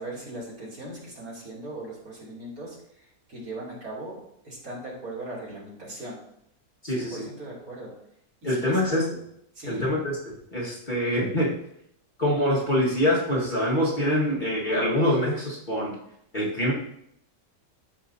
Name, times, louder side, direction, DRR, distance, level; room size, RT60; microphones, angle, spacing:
voice 1, 0.0-4.2 4.4-6.2 6.9-7.9 8.4-8.8 9.6-9.9, right 1 dB, 65° right, -6 dB, 3.3 m, -39 dB
voice 2, 6.8-7.2 8.4-9.2 9.7-11.6 12.2-16.0 16.3-16.7, left 1 dB, 30° left, -5 dB, 1.7 m, -25 dB
13.0 x 5.0 x 2.7 m, 0.74 s
omnidirectional pair, 1.7 m